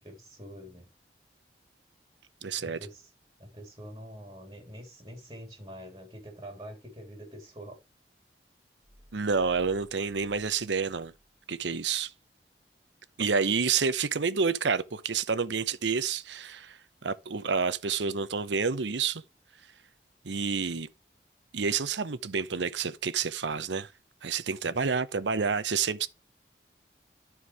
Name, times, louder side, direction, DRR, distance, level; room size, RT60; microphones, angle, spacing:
voice 1, 0.0-0.9 2.6-3.1 3.4-7.8 24.6-24.8, equal, 20° right, 3.3 m, -45 dB
voice 2, 2.4-2.8 9.1-11.1 11.5-12.1 13.2-19.2 20.2-20.9 21.5-23.9 24.2-26.1, right 5 dB, 85° right, 0.8 m, -29 dB
sound 1, 8.8-11.4 11.7-11.8, equal, 10° left, 1.6 m, -56 dB
11.5 x 4.7 x 4.8 m
head